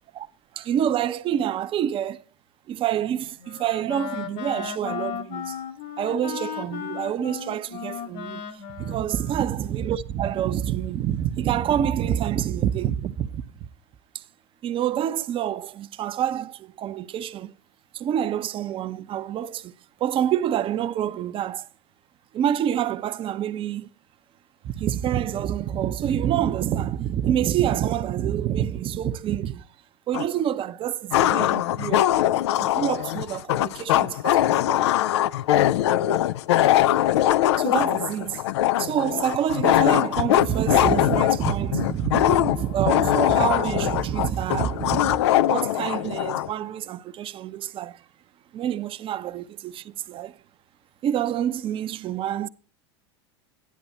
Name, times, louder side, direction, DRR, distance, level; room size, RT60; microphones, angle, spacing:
voice 1, 0.5-2.2 2.7-5.6 6.0-8.4 8.8-13.4 14.6-17.5 17.9-19.7 20.0-21.6 22.3-23.9 24.6-29.6 30.1-32.1 32.6-34.9 37.2-38.4 38.8-45.2 45.5-48.0 48.5-50.3 51.0-52.5, right 10 dB, 40° right, 0.9 m, -27 dB
Wind instrument woodwind instrument, 2.9-10.0, left 8 dB, 55° left, 1.8 m, -36 dB
sound 1, 30.1-30.2 31.1-46.5, left 13 dB, 70° left, 0.5 m, -22 dB
13.0 x 10.5 x 4.2 m
hypercardioid pair, 95°, 14 cm